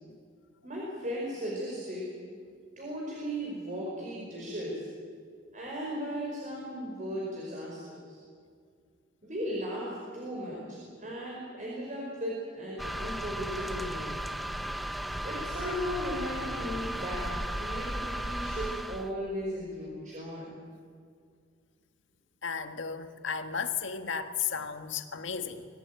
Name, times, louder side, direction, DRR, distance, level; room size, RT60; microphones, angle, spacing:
voice 1, 0.6-2.1 2.8-4.8 5.5-8.2 9.2-14.1 15.2-20.5, equal, 40° right, 5.0 m, -36 dB
sound 1, 12.8-19.1, right 1 dB, ahead, 0.8 m, -35 dB
voice 2, 22.4-25.7, left 6 dB, 75° left, 1.6 m, -34 dB
24.0 x 17.5 x 9.2 m
head